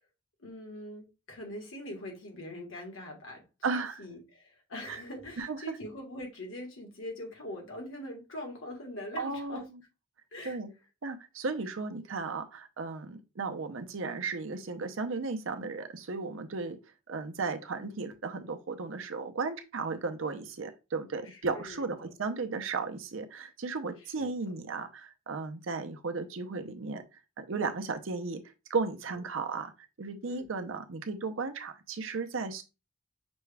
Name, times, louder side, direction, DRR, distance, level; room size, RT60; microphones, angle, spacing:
voice 1, 0.4-9.6 10.3-10.6 21.2-21.9 24.1-24.3 29.1-29.2 30.2-30.5, left 1 dB, 80° left, 1.6 m, -43 dB
voice 2, 3.6-4.0 4.9-5.0 5.4-5.6 9.2-9.6 10.4-10.7 11.0-16.8 17.1-27.0 27.4-28.4 28.7-29.7 30.0-32.6, right 4 dB, 75° right, 0.6 m, -35 dB
6.0 x 2.3 x 3.3 m
head